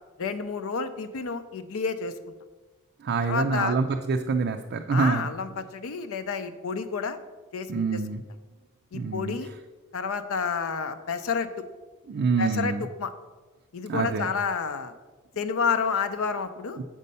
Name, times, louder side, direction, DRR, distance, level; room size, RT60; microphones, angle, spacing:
voice 1, 0.2-2.1 3.2-3.8 4.9-7.2 7.5-8.0 8.9-9.5 9.9-11.6 12.4-13.1 13.7-14.9 15.4-16.8, left 5 dB, 65° left, 10 dB, 0.5 m, -30 dB
voice 2, 3.0-5.3 7.7-8.2 8.9-9.3 12.1-12.9 13.9-14.3 16.8-16.9, right 4 dB, 50° right, 4 dB, 0.4 m, -26 dB
7.4 x 5.4 x 5.4 m, 1.3 s
head